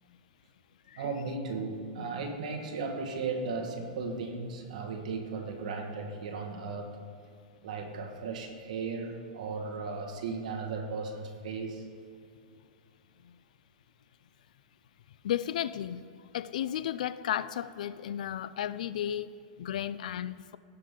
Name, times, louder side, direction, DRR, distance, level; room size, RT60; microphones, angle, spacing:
voice 1, 1.0-7.0 7.6-11.8, right 4 dB, 65° right, 1.5 m, -36 dB
voice 2, 15.2-16.0 16.3-20.6, left 10 dB, 70° left, 0.3 m, -34 dB
16.5 x 5.6 x 3.7 m
supercardioid pair, 170°, 4 cm